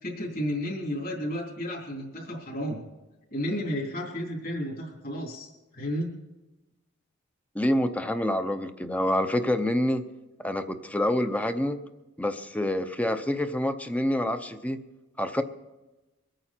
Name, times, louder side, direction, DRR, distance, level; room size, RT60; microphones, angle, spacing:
voice 1, 0.0-2.8 3.3-5.5 5.7-6.1, equal, 45° left, -2 dB, 3.2 m, -32 dB
voice 2, 7.5-10.0 10.4-11.8 12.2-14.8 15.2-15.4, left 1 dB, 5° left, 9 dB, 0.6 m, -27 dB
23.5 x 9.0 x 4.4 m, 1.1 s
head